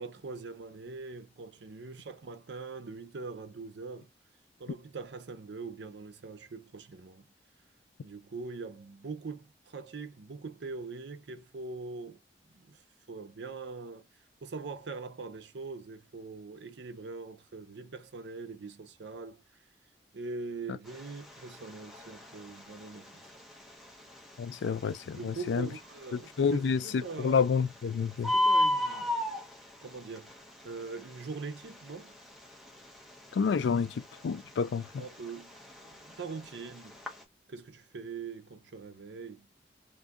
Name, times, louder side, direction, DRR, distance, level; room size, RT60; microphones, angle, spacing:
voice 1, 0.0-4.1 4.6-7.3 8.0-12.2 12.5-12.8 13.1-14.1 14.4-19.4 20.1-23.2 25.1-27.4 28.3-29.1 29.8-30.4 30.6-32.1 34.7-35.6 35.8-37.0 37.5-39.5, right 4 dB, 75° right, 0.6 m, -42 dB
Bird, 20.9-37.2, left 1 dB, ahead, 0.6 m, -35 dB
voice 2, 24.4-25.7 26.4-28.3 33.4-33.9 34.2-34.9, left 6 dB, 85° left, 0.3 m, -28 dB
2.6 x 2.2 x 3.5 m
head